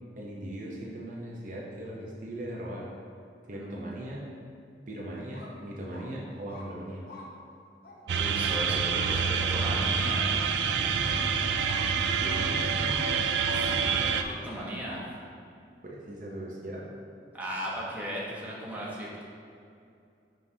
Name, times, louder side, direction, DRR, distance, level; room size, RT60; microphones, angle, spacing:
voice 1, 0.2-2.9 3.5-4.3 4.9-7.1 12.0-13.0 15.8-16.9, right 1 dB, 45° right, -4 dB, 0.7 m, -39 dB
voice 2, 3.4-3.8 8.0-10.3 13.5-15.0 17.3-19.2, equal, 10° right, -6 dB, 1.0 m, -37 dB
sound 1, 5.2-5.5 5.9-6.1 6.5-6.7 7.1-7.3 7.8-8.0 9.0-9.2 9.7-9.8 10.3-10.4 11.1-11.3 11.7-11.8 12.3-12.5 12.9-13.0 13.5-13.6 14.1-14.4 14.9-15.0, left 2 dB, 55° left, 0.9 m, -45 dB
sound 2, 8.1-14.2, right 6 dB, 75° right, 0.3 m, -27 dB
6.4 x 5.5 x 2.7 m, 2.5 s
head